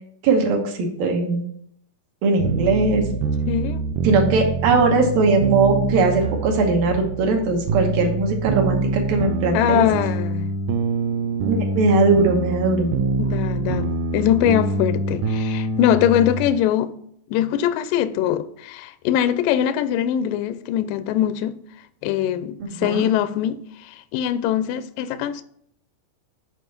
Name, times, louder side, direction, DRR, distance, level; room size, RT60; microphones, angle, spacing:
voice 1, 0.2-1.5 2.2-3.0 4.0-9.9 11.4-12.9 22.8-23.0, right 3 dB, 70° right, 2.7 m, -20 dB
sound 1, 2.4-16.5, right 3 dB, 90° right, 1.8 m, -25 dB
voice 2, 3.5-3.8 9.5-10.5 13.2-17.0 17.3-21.6 22.0-25.4, left 11 dB, 85° left, 1.9 m, -22 dB
7.4 x 5.0 x 5.8 m
omnidirectional pair, 4.4 m